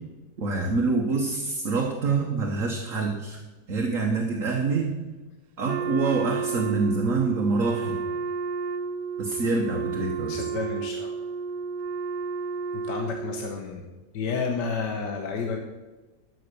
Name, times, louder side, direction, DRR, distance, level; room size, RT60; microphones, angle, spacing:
voice 1, 0.4-3.4 3.7-4.9 5.6-8.0 9.2-10.3, right 3 dB, 50° right, 0 dB, 1.6 m, -26 dB
Wind instrument woodwind instrument, 5.6-13.6, right 5 dB, 75° right, 1.2 m, -32 dB
voice 2, 10.3-11.1 12.7-13.9 14.1-15.6, left 5 dB, 70° left, 3 dB, 1.7 m, -31 dB
12.5 x 6.6 x 6.8 m, 1.2 s
omnidirectional pair, 1.9 m